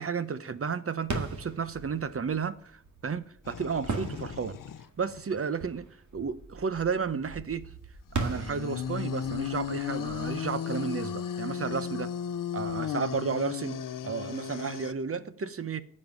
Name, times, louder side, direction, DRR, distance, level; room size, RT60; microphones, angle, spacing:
voice 1, 0.0-4.6 5.0-5.9 6.1-7.7 8.1-12.1 12.5-13.8 14.0-15.8, right 5 dB, 45° right, 0.8 m, -32 dB
sound 1, 1.0-11.6, right 3 dB, 65° right, 2.0 m, -40 dB
sound 2, 3.4-4.8 5.1-5.2 8.1-14.9, left 9 dB, 85° left, 0.6 m, -35 dB
14.5 x 5.4 x 9.5 m
wide cardioid pair, 120°, 32 cm